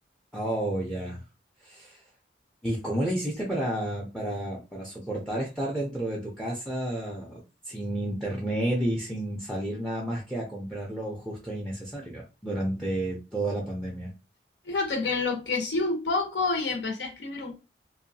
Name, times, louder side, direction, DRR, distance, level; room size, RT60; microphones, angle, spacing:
voice 1, 0.3-1.2 1.6-2.0 2.6-14.1, right 1 dB, 5° left, 0.4 m, -31 dB
voice 2, 14.6-17.5, left 3 dB, 80° left, 0.8 m, -28 dB
2.7 x 2.2 x 2.6 m
head